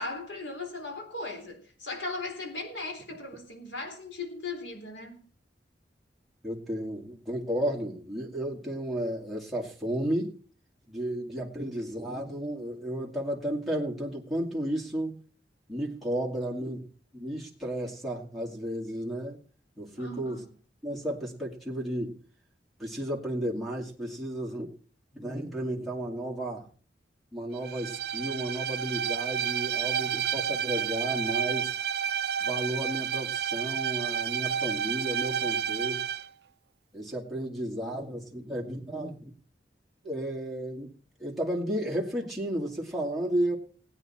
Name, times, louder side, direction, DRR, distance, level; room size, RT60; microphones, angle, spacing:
voice 1, 0.0-5.2 20.0-20.4, left 3 dB, 80° left, 3.7 m, -38 dB
voice 2, 6.4-10.4 10.9-15.2 15.7-16.9 17.1-19.4 19.8-20.4 20.8-22.2 22.8-24.7 25.1-26.7 27.3-31.8 32.4-36.0 36.9-39.3 40.0-40.9 41.2-43.6, right 1 dB, ahead, 2.3 m, -33 dB
Bowed string instrument, 27.6-36.3, right 8 dB, 60° right, 0.5 m, -30 dB
19.0 x 9.2 x 4.3 m
head